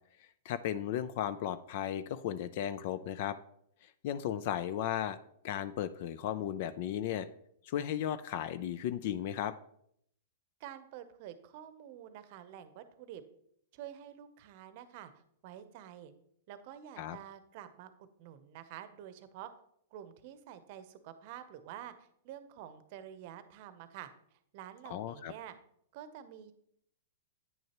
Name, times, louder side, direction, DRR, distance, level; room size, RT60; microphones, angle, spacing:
voice 1, 0.5-3.4 3.8-5.2 5.4-7.3 7.6-9.5 17.0-17.2 24.9-25.3, left 10 dB, 55° left, 15 dB, 0.4 m, -35 dB
voice 2, 10.6-13.2 13.7-16.1 16.5-19.5 19.9-24.1 24.5-25.6 25.9-26.5, right 11 dB, 50° right, 12 dB, 0.7 m, -48 dB
9.0 x 6.3 x 3.0 m, 0.70 s
hypercardioid pair, 135°, 0 cm